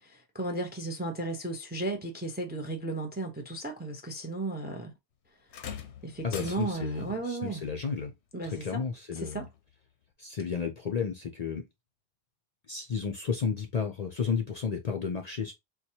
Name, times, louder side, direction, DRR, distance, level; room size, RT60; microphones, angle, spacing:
voice 1, 0.0-4.9 6.0-7.6 8.3-8.8 9.2-9.5, right 2 dB, 15° right, 0.4 m, -35 dB
sound 1, 5.5-7.1 8.5-8.7 9.5-9.6, left 8 dB, 90° left, 0.9 m, -42 dB
voice 2, 6.2-8.1 8.4-9.4 10.2-11.6 12.7-15.5, left 6 dB, 50° left, 0.5 m, -32 dB
4.3 x 2.3 x 2.7 m
omnidirectional pair, 1.1 m